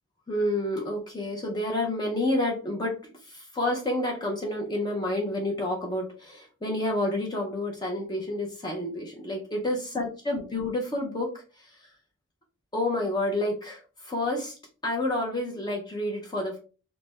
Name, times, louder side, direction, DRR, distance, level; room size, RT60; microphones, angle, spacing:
voice 1, 0.3-3.0 3.2-11.3 11.6-11.8 12.7-14.6 14.8-16.6, left 1 dB, 20° left, 0 dB, 0.5 m, -29 dB
3.1 x 2.0 x 3.3 m, 0.36 s
head